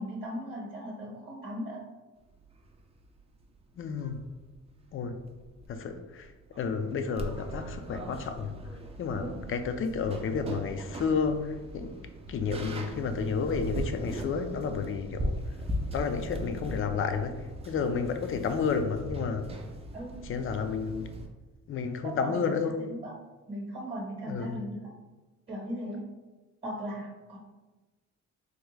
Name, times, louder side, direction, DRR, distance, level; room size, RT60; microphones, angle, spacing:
voice 1, 0.0-1.8 9.2-9.3 19.9-20.2 22.0-23.1 23.5-24.9 25.5-26.1 26.6-27.4, equal, 35° right, -4 dB, 0.9 m, -38 dB
sound 1, 2.3-21.3, right 1 dB, 20° right, 0.4 m, -39 dB
voice 2, 3.8-4.2 4.9-5.2 5.7-6.3 6.6-8.6 9.0-12.0 12.3-15.3 15.9-17.4 17.6-19.5 20.2-21.2 21.7-22.8 24.3-24.6, left 5 dB, 45° left, 8 dB, 0.4 m, -31 dB
3.6 x 2.1 x 3.1 m, 1.2 s
cardioid pair, 90°, 30 cm